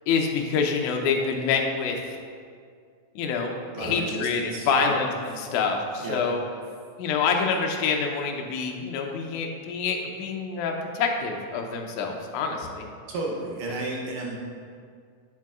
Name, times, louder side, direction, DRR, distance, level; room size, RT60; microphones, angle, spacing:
voice 1, 0.1-2.2 3.2-6.4 7.0-12.9, left 5 dB, 80° left, 2 dB, 1.8 m, -26 dB
voice 2, 3.7-5.0 6.0-6.2 13.1-14.4, right 2 dB, 75° right, -2 dB, 2.2 m, -32 dB
8.2 x 7.5 x 2.4 m, 2.1 s
omnidirectional pair, 4.1 m